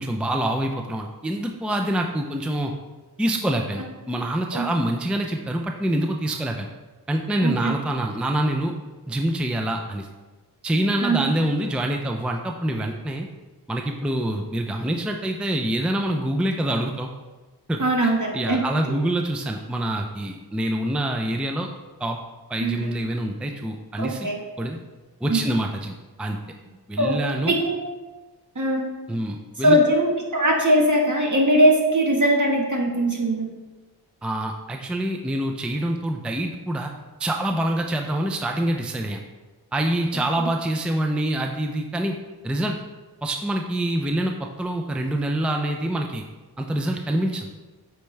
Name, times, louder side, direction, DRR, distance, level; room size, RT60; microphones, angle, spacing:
voice 1, 0.0-2.7 3.2-6.7 7.1-8.7 9.1-10.1 10.6-13.3 13.7-17.1 17.7-21.7 22.0-22.2 22.5-24.3 24.6-24.8 25.2-26.4 26.9-27.5 29.1-29.8 34.2-36.9 37.2-39.2 39.7-42.2 42.4-42.8 43.2-46.2 46.6-47.5, right 1 dB, 5° right, 3 dB, 0.5 m, -26 dB
voice 2, 7.4-7.7 11.0-11.3 17.8-18.6 22.6-22.9 24.0-24.4 25.3-25.5 27.0-27.2 27.4-27.8 28.5-28.9 29.6-33.5 40.1-40.2, right 1 dB, 45° right, 0 dB, 1.5 m, -21 dB
8.5 x 4.6 x 3.3 m, 1.2 s
wide cardioid pair, 55°, 41 cm